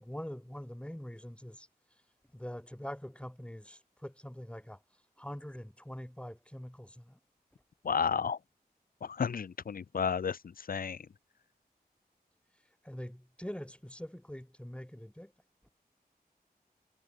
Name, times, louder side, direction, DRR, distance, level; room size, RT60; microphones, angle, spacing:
voice 1, 0.0-1.7 2.3-4.8 5.2-7.2 12.8-15.3, equal, 5° left, 2.5 m, -44 dB
voice 2, 7.8-8.4 9.0-11.1, left 6 dB, 65° left, 0.5 m, -32 dB
cardioid pair, 45°, 16 cm